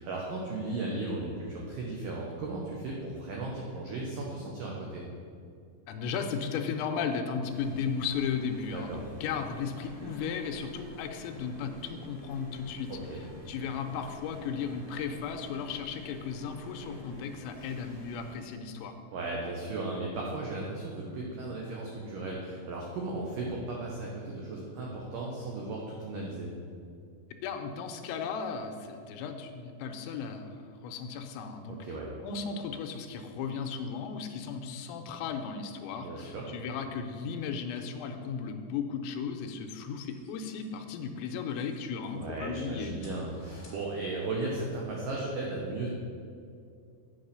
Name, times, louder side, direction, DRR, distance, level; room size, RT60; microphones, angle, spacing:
voice 1, 0.0-5.0 8.7-9.1 12.9-13.2 19.1-26.5 31.8-32.1 36.0-36.5 42.1-45.9, right 2 dB, 90° right, -2 dB, 1.9 m, -36 dB
voice 2, 5.9-19.0 27.4-31.8 32.2-42.9, left 6 dB, 80° left, 5 dB, 2.9 m, -35 dB
sound 1, 7.4-18.3, equal, 60° right, 0.7 m, -49 dB
sound 2, 40.1-42.3 42.8-44.4, left 2 dB, 40° left, 2.1 m, -56 dB
8.5 x 5.5 x 6.7 m, 2.4 s
omnidirectional pair, 5.3 m